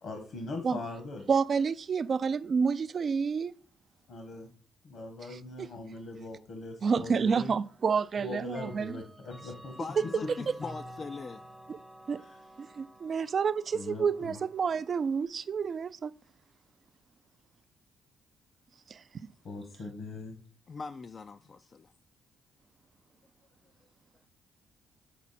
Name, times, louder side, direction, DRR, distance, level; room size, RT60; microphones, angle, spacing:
voice 1, 0.0-1.3 4.1-4.5 4.8-7.5 8.2-9.8 12.2-12.4 13.7-14.4 19.4-20.4, left 2 dB, 65° left, 1.3 m, -41 dB
voice 2, 1.3-3.5 5.3-5.7 6.8-9.0 10.0-10.1 11.7-11.8 12.1-12.2 12.6-16.1 18.9-19.0, right 6 dB, 45° right, 0.3 m, -29 dB
Clock, 7.1-7.2 8.5-15.3, right 1 dB, 5° right, 0.6 m, -50 dB
voice 3, 9.8-11.4 20.7-21.9, left 5 dB, 40° left, 0.3 m, -41 dB
7.3 x 4.3 x 4.2 m
cardioid pair, 90°, 0 cm